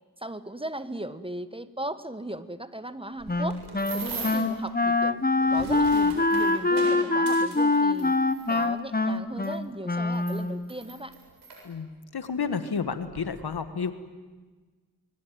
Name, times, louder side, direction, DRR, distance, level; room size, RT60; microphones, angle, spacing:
voice 1, 0.2-3.6 3.9-5.2 5.5-8.1 8.5-11.1, right 1 dB, 15° right, 12 dB, 1.4 m, -37 dB
sound 1, 3.2-4.5 5.3-8.6 9.4-9.5 10.1-11.6 12.4-12.5 12.9-13.2, right 3 dB, 85° right, 7.8 m, -40 dB
Wind instrument woodwind instrument, 3.3-10.7, left 3 dB, 25° left, 1.5 m, -24 dB
voice 2, 11.6-13.9, left 5 dB, 75° left, 10 dB, 1.8 m, -31 dB
25.0 x 23.0 x 9.3 m, 1.3 s
cardioid pair, 45°, 38 cm